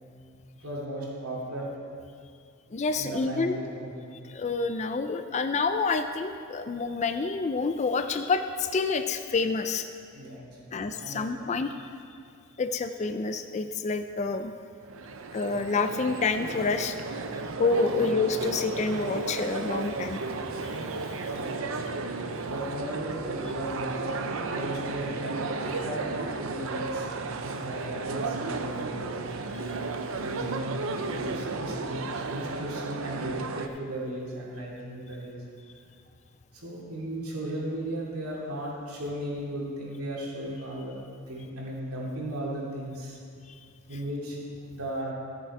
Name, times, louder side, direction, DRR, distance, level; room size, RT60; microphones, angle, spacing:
voice 1, 0.6-1.7 3.0-4.0 10.1-11.3 17.8-18.1 21.3-22.1 22.4-25.3 25.6-27.1 27.4-29.5 30.1-35.4 36.5-41.0 41.3-43.2 43.9-44.4 44.7-45.1, right 1 dB, 80° right, -4 dB, 2.5 m, -36 dB
voice 2, 2.7-3.6 4.3-9.9 10.7-11.7 12.6-14.5 15.3-17.0 17.6-20.2 21.0-21.1, left 4 dB, 30° left, 8 dB, 0.3 m, -28 dB
sound 1, 14.8-33.7, right 3 dB, 60° right, 0.6 m, -34 dB
14.0 x 6.7 x 4.7 m, 2.3 s
head